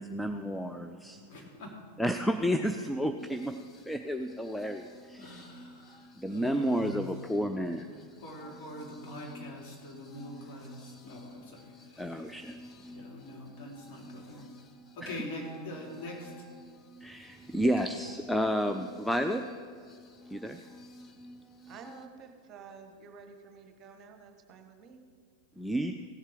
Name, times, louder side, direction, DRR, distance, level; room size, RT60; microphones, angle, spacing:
voice 1, 0.0-1.2 2.0-3.5 3.9-5.4 6.2-7.9 12.0-12.6 15.0-15.2 17.0-19.4 20.3-20.6 25.6-26.0, equal, 5° left, 6 dB, 0.4 m, -31 dB
voice 2, 1.3-1.8 5.1-7.2 7.7-7.9 8.2-12.2 12.9-14.5 14.9-16.5, left 1 dB, 45° left, -1 dB, 2.8 m, -44 dB
sound 1, 3.2-22.1, left 1 dB, 20° left, 0.9 m, -52 dB
voice 3, 21.7-25.0, right 5 dB, 35° right, 5 dB, 1.2 m, -50 dB
16.0 x 7.3 x 5.0 m, 2.2 s
figure-of-eight pair, 90°, 0 cm